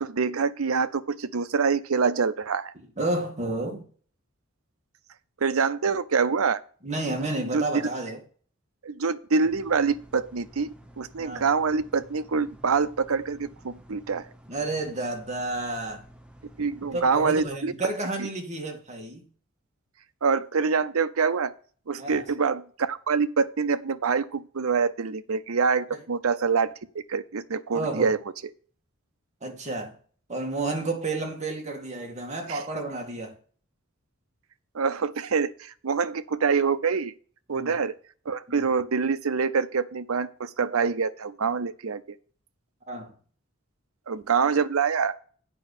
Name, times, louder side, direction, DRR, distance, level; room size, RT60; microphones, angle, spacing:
voice 1, 0.0-2.7 5.4-6.6 7.5-7.6 8.8-14.3 16.6-17.7 20.2-21.5 21.9-26.7 27.1-28.2 32.5-32.7 34.7-37.1 37.5-37.9 38.3-42.0 44.1-45.1, right 5 dB, 90° right, 0.7 m, -25 dB
voice 2, 3.0-3.9 6.8-8.2 11.1-11.4 14.5-16.0 16.8-19.2 22.0-22.2 27.7-28.1 29.4-29.9 30.3-33.3 37.5-37.7 38.5-38.6 42.9-43.1, right 2 dB, 35° right, 2.2 m, -31 dB
sound 1, 9.4-17.6, equal, 5° right, 0.9 m, -52 dB
8.5 x 5.4 x 6.6 m
head